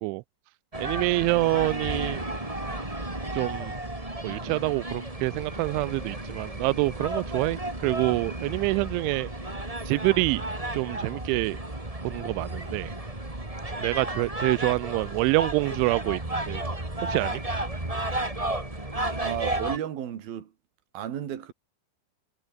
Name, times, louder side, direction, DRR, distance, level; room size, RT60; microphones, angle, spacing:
sound 1, 0.7-19.8, right 1 dB, 10° right, 2.8 m, -33 dB
voice 1, 0.8-2.2 3.3-3.7 4.2-9.3 9.9-10.4 10.7-11.6 12.0-12.9 13.8-16.2 16.5-16.6 17.0-17.4, right 24 dB, 85° right, 3.0 m, -26 dB
voice 2, 19.2-20.5 20.9-21.5, right 10 dB, 55° right, 4.0 m, -33 dB
omnidirectional pair, 5.3 m